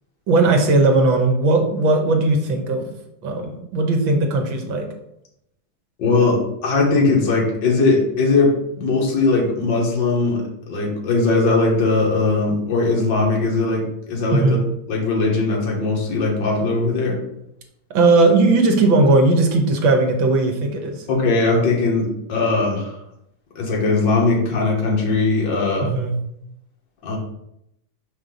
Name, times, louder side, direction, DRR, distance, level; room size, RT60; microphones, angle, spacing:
voice 1, 0.3-2.9 3.2-4.9 14.3-14.6 17.9-21.1 25.8-26.2, right 3 dB, 70° right, 3 dB, 1.8 m, -17 dB
voice 2, 6.0-8.5 8.8-10.4 10.7-14.6 14.9-17.2 21.1-23.0 23.6-25.9 27.0-27.2, left 3 dB, 60° left, -2 dB, 2.0 m, -19 dB
5.4 x 5.3 x 3.9 m, 0.79 s
omnidirectional pair, 2.2 m